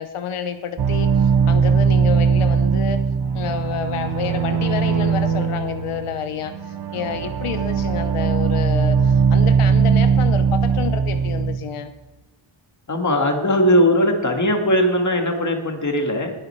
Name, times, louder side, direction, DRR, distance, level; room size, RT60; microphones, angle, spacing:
voice 1, 0.0-3.0 3.3-11.9, left 8 dB, 90° left, 9 dB, 0.8 m, -29 dB
sound 1, 0.8-11.6, right 6 dB, 50° right, 0.9 m, -19 dB
voice 2, 12.9-16.3, equal, 35° left, 3 dB, 2.0 m, -19 dB
20.0 x 8.0 x 4.5 m, 1.1 s
wide cardioid pair, 110°, 49 cm